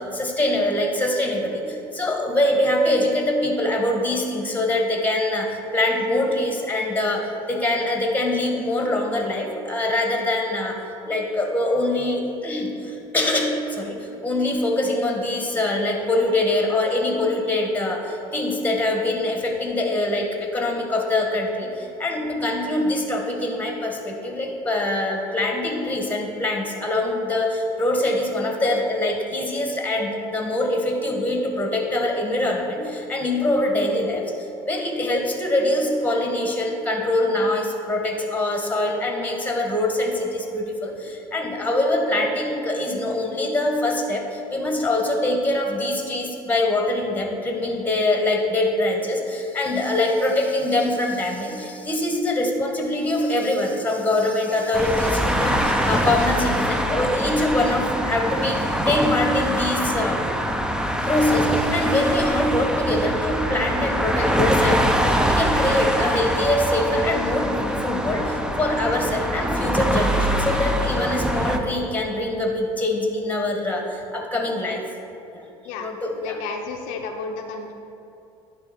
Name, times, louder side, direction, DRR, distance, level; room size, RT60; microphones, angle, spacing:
voice 1, 0.0-10.8 11.1-34.3 34.7-60.2 61.0-74.8 75.3-75.5 75.8-76.4, left 1 dB, 10° left, 2 dB, 1.6 m, -24 dB
sound 1, 54.7-71.6, equal, 5° right, 0.7 m, -24 dB
voice 2, 76.2-77.7, left 4 dB, 70° left, 3 dB, 0.6 m, -32 dB
9.7 x 3.5 x 5.9 m, 2.8 s
hypercardioid pair, 75°, 13 cm